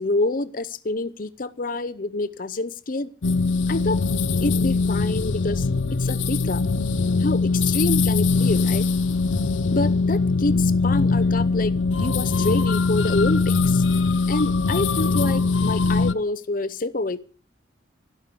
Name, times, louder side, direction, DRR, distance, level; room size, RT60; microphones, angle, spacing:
voice 1, 0.0-3.1 3.7-4.0 4.4-5.7 6.0-6.6 7.2-8.9 9.7-11.7 12.0-13.8 14.3-17.2, left 2 dB, 45° left, 15 dB, 0.8 m, -27 dB
sound 1, 3.2-16.1, left 4 dB, 80° left, 0.6 m, -21 dB
12.0 x 12.0 x 6.8 m, 0.40 s
head